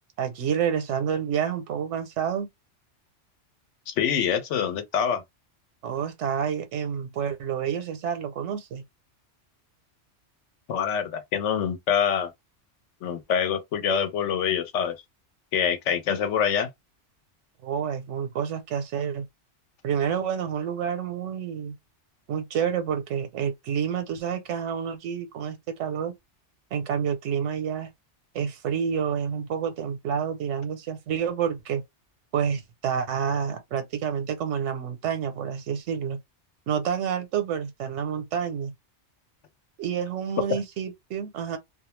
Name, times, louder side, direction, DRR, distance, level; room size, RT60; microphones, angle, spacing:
voice 1, 0.2-2.5 5.8-8.8 17.6-19.3 19.8-21.8 22.3-26.1 26.7-27.9 28.3-31.8 32.3-36.2 36.7-38.7 39.8-41.6, right 8 dB, 85° right, 0.9 m, -29 dB
voice 2, 3.9-5.2 10.7-12.3 13.0-14.9 15.5-16.7 40.5-40.6, left 8 dB, 80° left, 1.0 m, -25 dB
2.3 x 2.1 x 3.0 m
omnidirectional pair, 1.2 m